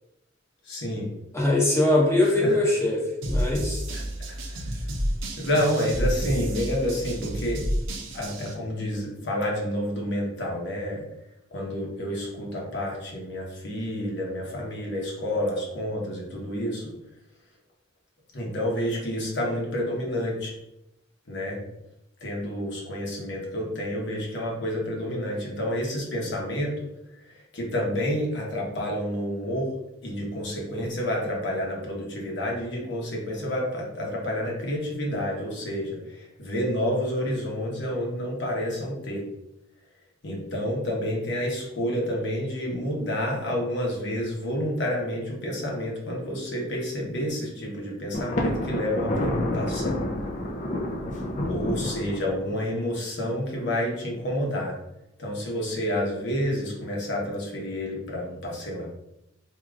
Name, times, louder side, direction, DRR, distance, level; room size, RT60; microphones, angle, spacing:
voice 1, 0.6-1.1 2.2-2.7 3.9-4.0 4.3-4.8 5.4-7.7 8.1-11.0 11.5-16.9 18.3-20.5 21.3-21.6 22.2-26.9 27.3-29.7 30.0-39.3 40.2-50.0 51.5-54.8 55.2-58.9, equal, 65° left, -2 dB, 1.1 m, -29 dB
voice 2, 1.3-3.8, left 1 dB, 15° left, -3 dB, 1.0 m, -22 dB
sound 1, 3.2-8.5, equal, 80° right, 0.7 m, -30 dB
Thunder, 48.1-52.7, left 1 dB, 40° left, 0.5 m, -29 dB
4.7 x 2.9 x 2.4 m, 0.85 s
head